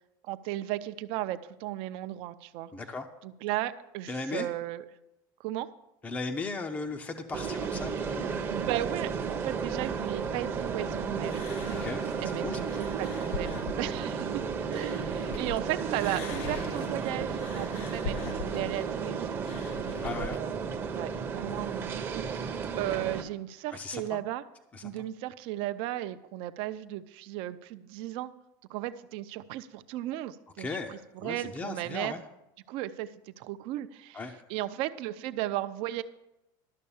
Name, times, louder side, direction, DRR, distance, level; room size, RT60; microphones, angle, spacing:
voice 1, 0.3-2.7 3.2-4.8 5.4-5.7 8.5-11.5 12.2-19.4 20.0-24.4 24.8-28.3 28.7-32.2 32.7-34.2 34.5-36.0, right 14 dB, 50° right, 11 dB, 0.6 m, -35 dB
voice 2, 2.7-3.1 4.1-4.5 6.0-8.4 11.7-12.7 20.0-20.4 23.7-24.2 24.7-24.9 30.6-32.2 34.1-34.4, left 3 dB, 15° left, 6 dB, 0.6 m, -37 dB
sound 1, 7.3-23.2, right 6 dB, 20° right, 0.8 m, -33 dB
sound 2, 11.2-15.6 15.9-20.4, left 5 dB, 50° left, 0.7 m, -42 dB
12.5 x 6.5 x 7.0 m, 0.89 s
supercardioid pair, 160°, 11 cm